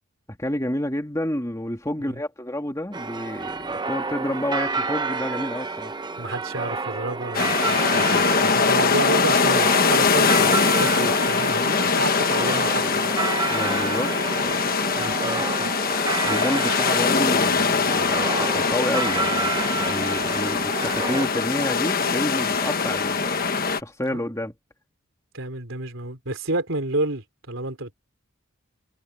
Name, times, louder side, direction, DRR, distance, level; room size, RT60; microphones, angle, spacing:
voice 1, 0.3-5.9 13.5-14.2 14.4-14.6 15.0-15.1 16.2-23.4 23.7-24.5, left 1 dB, 15° left, 2.6 m, -29 dB
sound 1, 2.9-21.3, right 4 dB, 20° right, 0.8 m, -30 dB
voice 2, 6.2-13.1 15.0-15.7 24.0-24.2 25.3-27.9, right 2 dB, 65° right, 4.0 m, -30 dB
sound 2, 7.3-23.8, left 5 dB, 45° left, 1.3 m, -22 dB
head